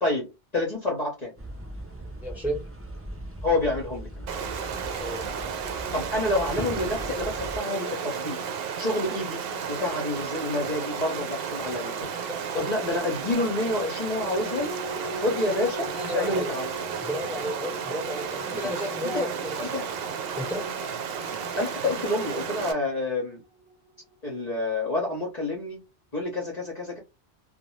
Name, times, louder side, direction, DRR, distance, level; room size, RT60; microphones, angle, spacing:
voice 1, 0.0-1.3 3.4-4.3 5.9-8.4 8.8-9.4 9.7-12.1 12.5-14.7 15.1-16.7 18.6-18.7 19.0-19.3 19.6-19.9 21.5-23.4 24.2-25.8 26.1-27.0, left 2 dB, 40° left, 0.8 m, -28 dB
sound 1, 1.4-7.6, right 1 dB, 20° right, 0.3 m, -39 dB
voice 2, 2.2-2.6 5.0-5.2 12.3-12.6 15.9-16.5 17.0-19.7 20.4-20.8, equal, ahead, 0.8 m, -33 dB
Stream, 4.3-22.7, right 6 dB, 65° right, 0.7 m, -33 dB
sound 2, 13.3-24.1 24.5-24.6, equal, 45° right, 1.0 m, -42 dB
2.5 x 2.1 x 3.0 m
omnidirectional pair, 1.1 m